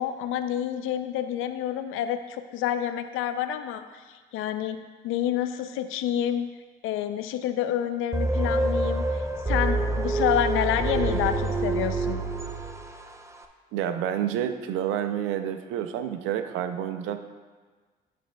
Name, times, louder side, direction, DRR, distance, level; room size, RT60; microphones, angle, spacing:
voice 1, 0.0-4.8 5.0-6.5 6.8-9.1 9.5-12.2, left 10 dB, 75° left, 10 dB, 0.5 m, -28 dB
sound 1, 8.1-13.1, right 2 dB, 15° right, 0.7 m, -26 dB
voice 2, 13.7-17.3, right 10 dB, 80° right, 9 dB, 0.5 m, -29 dB
9.0 x 8.3 x 2.3 m, 1.4 s
supercardioid pair, 60°, 21 cm